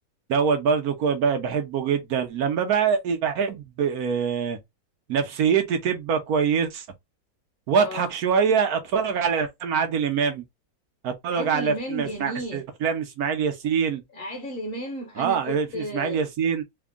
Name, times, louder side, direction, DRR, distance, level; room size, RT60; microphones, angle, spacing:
voice 1, 0.3-4.6 5.1-6.8 7.7-10.4 11.0-14.0 15.2-16.6, right 6 dB, 65° right, 1.1 m, -24 dB
voice 2, 7.8-8.1 11.3-12.6 14.1-16.2, equal, 35° left, 1.1 m, -34 dB
3.5 x 2.3 x 3.6 m
omnidirectional pair, 1.9 m